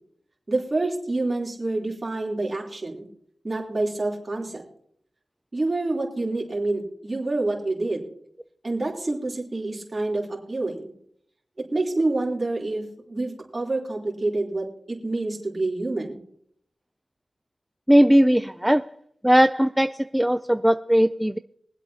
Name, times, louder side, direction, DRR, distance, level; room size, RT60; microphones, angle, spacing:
voice 1, 0.5-3.1 3.4-4.6 5.5-8.1 8.6-10.9 11.6-16.2, right 2 dB, 40° right, -2 dB, 3.3 m, -27 dB
voice 2, 17.9-18.9 19.2-21.4, equal, 5° right, 11 dB, 0.4 m, -19 dB
23.5 x 8.0 x 2.8 m, 0.68 s
cardioid pair, 50°, 0 cm